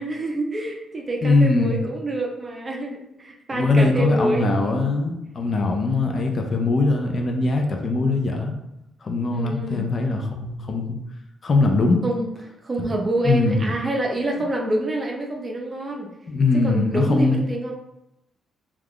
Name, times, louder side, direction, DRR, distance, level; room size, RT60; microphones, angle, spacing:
voice 1, 0.0-4.8 6.1-6.2 9.3-9.9 12.0-12.3 12.6-16.1 16.5-17.7, right 1 dB, 30° right, 1 dB, 0.5 m, -27 dB
voice 2, 1.2-1.8 3.5-8.5 9.0-11.0 11.4-12.0 13.2-13.7 16.3-17.4, left 3 dB, 40° left, 3 dB, 0.5 m, -21 dB
2.4 x 2.3 x 3.5 m, 0.87 s
cardioid pair, 90°, 0 cm